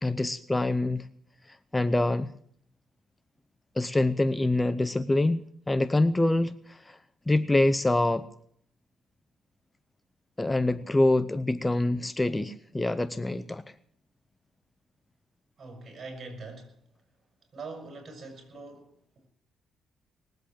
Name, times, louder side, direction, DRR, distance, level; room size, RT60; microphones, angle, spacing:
voice 1, 0.0-1.1 1.7-2.3 3.8-7.0 7.3-8.3 10.4-13.6, left 2 dB, 15° left, 12 dB, 0.7 m, -25 dB
voice 2, 15.6-16.8 17.5-19.3, right 3 dB, 50° right, 5 dB, 5.8 m, -43 dB
20.0 x 8.0 x 8.6 m, 0.64 s
cardioid pair, 90°, 0 cm